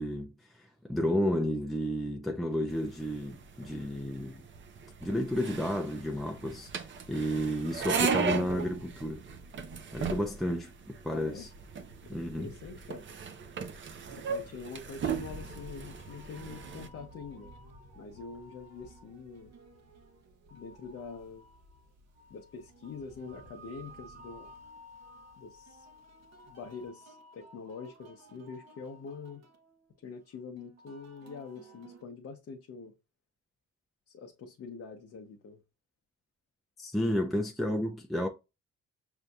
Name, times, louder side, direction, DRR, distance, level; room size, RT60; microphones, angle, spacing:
voice 1, 0.0-4.4 5.0-6.7 7.1-9.2 9.9-11.5 12.1-12.5 36.8-38.3, equal, ahead, 0.4 m, -32 dB
sound 1, 2.7-16.9, right 6 dB, 40° right, 0.6 m, -37 dB
voice 2, 11.1-11.5 12.4-13.0 14.2-17.5 17.9-19.5 20.5-21.5 22.3-24.5 25.4-25.9 26.5-29.4 30.0-32.9 34.1-35.6, left 5 dB, 50° left, 0.7 m, -45 dB
sound 2, 15.0-32.0, right 1 dB, 60° right, 0.9 m, -56 dB
Thunder, 15.0-26.9, equal, 75° right, 1.7 m, -54 dB
6.4 x 2.6 x 2.3 m
cardioid pair, 130°, 30 cm